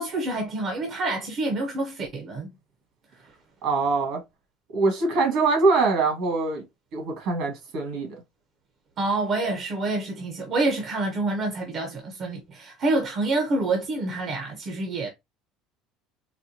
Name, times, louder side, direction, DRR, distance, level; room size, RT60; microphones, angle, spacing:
voice 1, 0.0-2.5 9.0-15.1, right 2 dB, 45° right, 0.9 m, -27 dB
voice 2, 3.6-4.2 4.7-6.6 6.9-8.1, right 3 dB, 65° right, 1.7 m, -23 dB
4.1 x 2.2 x 2.8 m
supercardioid pair, 110°, 0 cm